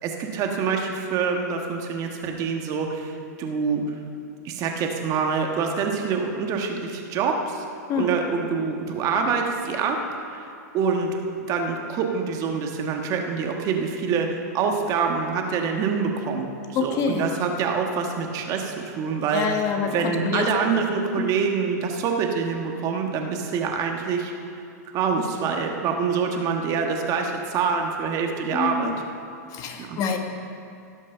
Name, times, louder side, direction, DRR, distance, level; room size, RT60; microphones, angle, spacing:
voice 1, 0.0-3.1 3.4-3.8 4.4-7.6 7.9-10.0 10.3-10.4 10.7-11.2 11.5-16.5 16.8-19.5 19.9-24.3 24.9-28.9 29.9-30.0, right 5 dB, 40° right, 3 dB, 1.4 m, -25 dB
voice 2, 16.7-17.2 19.3-20.5 21.2-21.3 28.5-29.0 29.5-30.2, left 5 dB, 40° left, 4 dB, 1.3 m, -26 dB
17.0 x 6.3 x 5.6 m, 2.5 s
hypercardioid pair, 120°, 9 cm